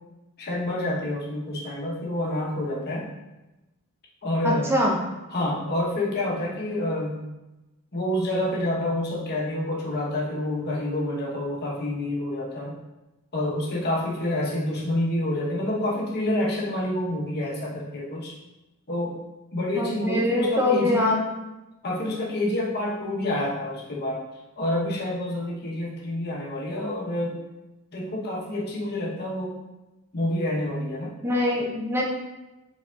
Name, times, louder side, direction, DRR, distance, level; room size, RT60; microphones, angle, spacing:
voice 1, 0.4-3.1 4.2-4.7 5.3-7.3 7.9-12.8 13.3-18.4 18.9-19.2 19.5-21.1 21.8-24.2 24.6-27.4 27.9-29.6 30.1-31.2, left 1 dB, 50° left, -3 dB, 0.9 m, -28 dB
voice 2, 4.4-5.0 19.8-21.4 31.2-32.0, left 1 dB, 10° right, -2 dB, 0.6 m, -23 dB
4.8 x 4.0 x 2.3 m, 1.0 s
head